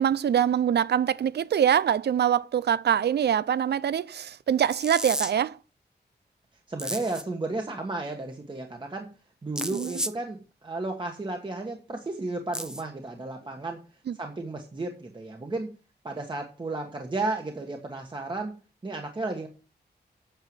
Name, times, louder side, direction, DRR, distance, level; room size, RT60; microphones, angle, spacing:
voice 1, 0.0-5.6 9.7-9.9 14.1-14.2, right 9 dB, 70° right, 0.5 m, -24 dB
sound 1, 4.7-5.3 6.8-7.2 9.6-10.2 12.5-12.8, equal, 5° right, 0.7 m, -33 dB
voice 2, 6.7-9.1 9.4-13.8 14.1-15.7 16.0-18.5 18.8-19.5, right 2 dB, 25° right, 1.4 m, -33 dB
9.1 x 6.7 x 7.7 m
wide cardioid pair, 145°, 18 cm